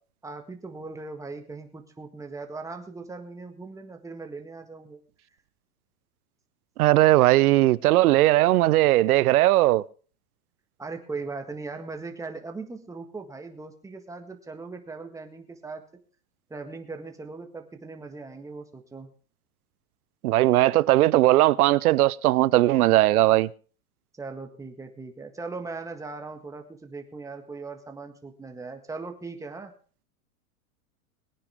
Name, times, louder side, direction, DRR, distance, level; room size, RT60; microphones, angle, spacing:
voice 1, 0.2-5.0 10.8-15.9 16.5-19.1 24.2-29.7, right 3 dB, 5° right, 1.6 m, -39 dB
voice 2, 6.8-9.8 20.2-23.5, right 16 dB, 75° right, 0.7 m, -19 dB
21.5 x 9.9 x 3.6 m
supercardioid pair, 145°, 44 cm